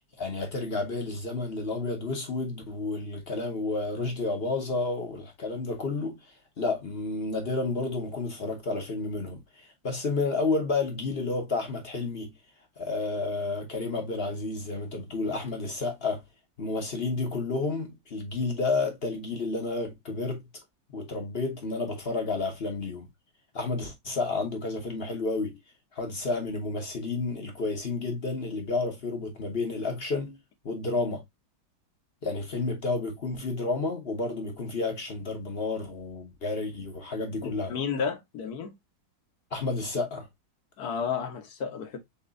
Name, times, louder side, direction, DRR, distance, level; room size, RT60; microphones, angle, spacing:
voice 1, 0.2-6.2 6.6-12.3 12.8-16.2 16.6-20.5 20.9-23.1 23.5-25.6 25.9-30.4 30.6-31.2 32.2-37.7 39.5-40.3, left 3 dB, 40° left, 1.0 m, -31 dB
voice 2, 37.4-38.8 40.8-42.0, left 6 dB, 60° left, 1.5 m, -32 dB
6.9 x 3.0 x 2.5 m
omnidirectional pair, 2.0 m